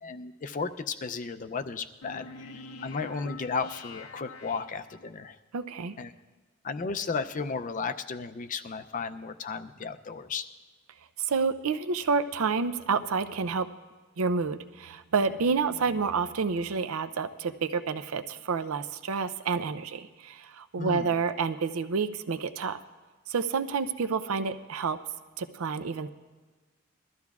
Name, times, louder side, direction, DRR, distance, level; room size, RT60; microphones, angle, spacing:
voice 1, 0.0-2.5 2.8-5.4 6.0-6.1 6.6-10.4 20.8-21.1, left 5 dB, 35° left, 10 dB, 0.4 m, -34 dB
sound 1, 2.0-5.3, left 3 dB, 85° left, 0.7 m, -46 dB
voice 2, 5.5-6.0 11.2-13.7 14.2-22.8 23.3-25.0 25.4-26.1, right 5 dB, 80° right, 11 dB, 0.5 m, -29 dB
21.5 x 13.0 x 2.4 m, 1.3 s
head